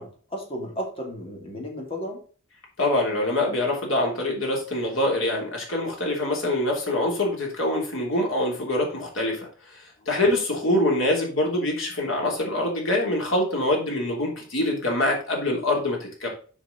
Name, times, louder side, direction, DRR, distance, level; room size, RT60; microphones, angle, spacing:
voice 1, 0.0-2.2, equal, 30° left, 0 dB, 2.5 m, -34 dB
voice 2, 2.8-9.5 10.1-16.3, left 1 dB, 85° left, 0 dB, 3.2 m, -24 dB
7.2 x 5.0 x 5.1 m, 0.40 s
head